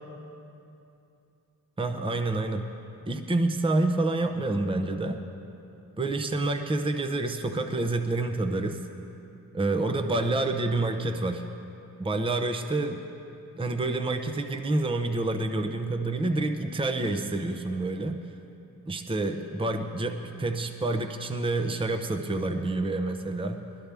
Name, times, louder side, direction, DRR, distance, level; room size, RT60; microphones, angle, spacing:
voice 1, 1.8-2.6 3.1-5.2 6.0-8.8 9.5-11.4 12.0-13.1 13.6-18.2 18.9-23.6, right 2 dB, 15° right, 6 dB, 0.7 m, -28 dB
20.5 x 13.0 x 3.4 m, 2.7 s
cardioid pair, 85°, 37 cm